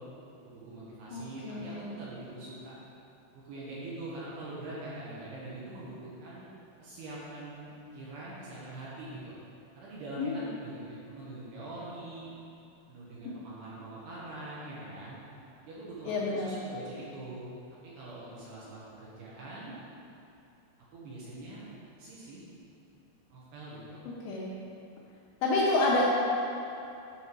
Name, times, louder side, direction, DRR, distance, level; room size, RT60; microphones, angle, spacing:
voice 1, 0.4-2.7 3.3-6.5 6.8-9.3 9.7-12.3 12.9-15.2 15.6-17.5 17.8-19.7 20.9-21.7 22.0-22.4 23.3-24.1, right 2 dB, 65° right, -8 dB, 3.0 m, -43 dB
voice 2, 1.1-1.9 10.2-10.4 16.1-16.5 24.1-24.5 25.4-26.0, left 2 dB, 75° left, -5 dB, 2.8 m, -29 dB
11.0 x 5.3 x 4.7 m, 2.8 s
omnidirectional pair, 5.8 m